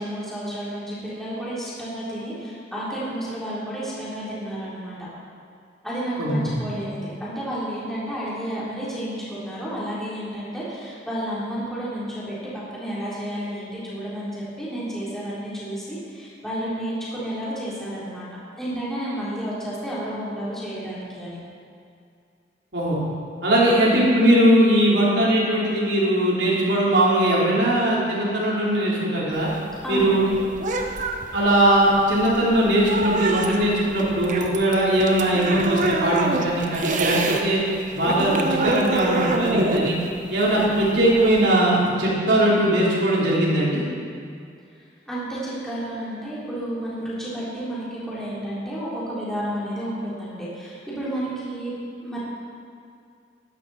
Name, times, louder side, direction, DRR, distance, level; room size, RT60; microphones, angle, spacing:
voice 1, 0.0-5.1 5.8-18.2 18.6-21.4 29.8-30.4 45.1-51.7 52.0-52.2, right 1 dB, ahead, -9 dB, 3.6 m, -31 dB
voice 2, 6.2-6.5 22.7-23.0 23.4-29.5 29.9-30.3 31.3-37.6 37.9-40.0 40.3-43.8, right 1 dB, 75° right, -6 dB, 3.8 m, -20 dB
sound 1, 29.3-37.4 37.7-41.5, right 2 dB, 45° right, 1.0 m, -26 dB
14.5 x 11.5 x 4.3 m, 2.3 s
head